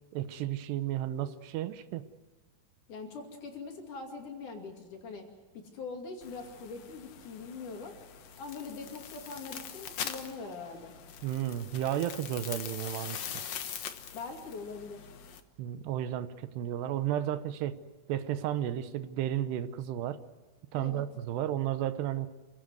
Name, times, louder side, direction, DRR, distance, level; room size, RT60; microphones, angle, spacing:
voice 1, 0.1-2.0 11.2-13.4 15.6-17.8 18.1-20.2 20.7-22.3, right 11 dB, 80° right, 12 dB, 3.0 m, -33 dB
voice 2, 2.9-5.3 5.5-7.9 8.4-10.9 14.1-15.1 20.8-21.0, left 4 dB, 50° left, 2 dB, 3.7 m, -42 dB
sound 1, 6.2-15.4, left 8 dB, 70° left, 1.5 m, -43 dB
27.5 x 17.0 x 7.9 m, 1.3 s
omnidirectional pair, 4.8 m